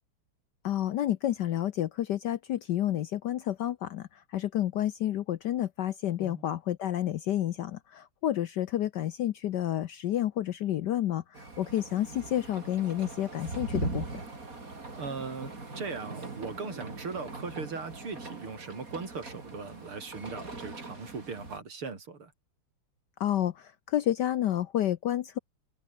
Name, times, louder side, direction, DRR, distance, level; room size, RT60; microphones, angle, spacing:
voice 1, 0.6-14.2 23.2-25.4, left 12 dB, 65° left, 1.1 m, -30 dB
sound 1, 11.3-21.6, right 3 dB, 40° right, 4.3 m, -41 dB
voice 2, 15.0-22.3, right 4 dB, 75° right, 4.6 m, -39 dB
omnidirectional pair, 2.4 m